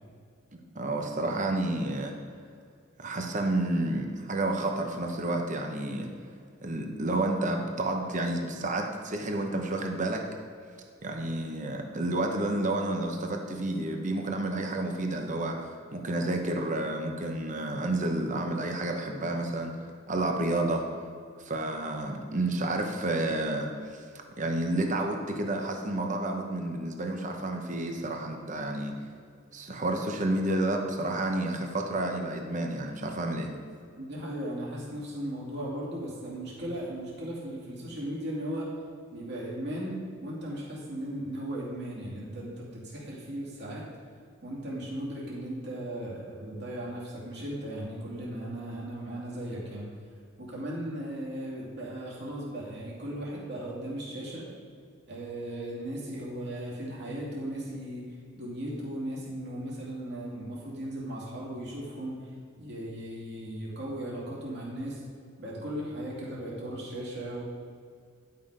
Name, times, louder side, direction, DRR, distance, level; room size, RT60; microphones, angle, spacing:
voice 1, 0.7-2.1 3.0-6.1 6.6-10.2 11.0-15.6 15.9-19.7 20.1-20.8 21.4-23.7 24.4-28.9 29.5-33.5, right 2 dB, 40° right, 3 dB, 0.9 m, -30 dB
voice 2, 34.0-38.7 39.1-39.9 40.2-43.8 44.4-49.9 50.4-54.4 55.1-58.0 58.4-65.0 65.4-67.4, right 1 dB, 55° right, -6 dB, 2.7 m, -37 dB
11.0 x 5.7 x 5.0 m, 2.2 s
head